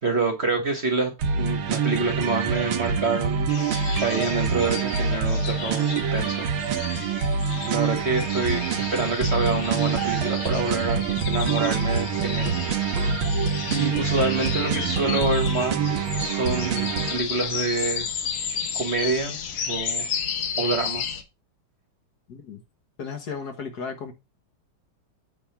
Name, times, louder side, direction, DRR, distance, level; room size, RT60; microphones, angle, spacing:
voice 1, 0.0-1.1 1.4-3.5 4.0-6.5 7.6-12.5 13.7-18.1 18.7-19.4 19.7-20.1 20.6-21.0, right 3 dB, 35° right, 1.4 m, -27 dB
sound 1, 1.2-17.2, right 6 dB, 85° right, 1.9 m, -26 dB
sound 2, 3.5-21.2, left 7 dB, 75° left, 1.9 m, -33 dB
voice 2, 22.3-22.6 23.0-24.1, left 5 dB, 55° left, 1.6 m, -34 dB
8.6 x 3.4 x 5.8 m
omnidirectional pair, 2.2 m